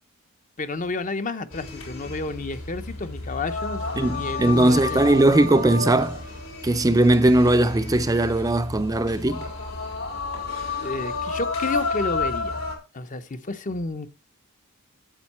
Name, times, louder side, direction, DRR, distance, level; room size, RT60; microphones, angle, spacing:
voice 1, 0.6-5.2 10.8-12.6 12.9-14.1, left 3 dB, 35° left, 0.8 m, -31 dB
sound 1, 1.5-12.8, left 3 dB, 70° left, 4.5 m, -31 dB
voice 2, 4.0-6.2 6.6-9.5, right 1 dB, 15° right, 0.5 m, -19 dB
9.1 x 8.0 x 4.3 m
head